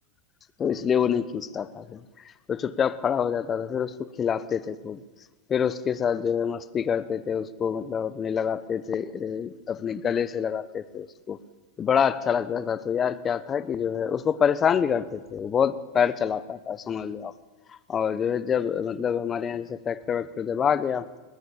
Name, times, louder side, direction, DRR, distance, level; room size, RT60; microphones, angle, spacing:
voice 1, 0.6-2.0 2.5-5.0 5.5-11.4 11.8-17.3 17.9-21.1, left 7 dB, 25° left, 15 dB, 1.2 m, -26 dB
20.5 x 20.0 x 8.8 m, 1.3 s
hypercardioid pair, 105°, 0 cm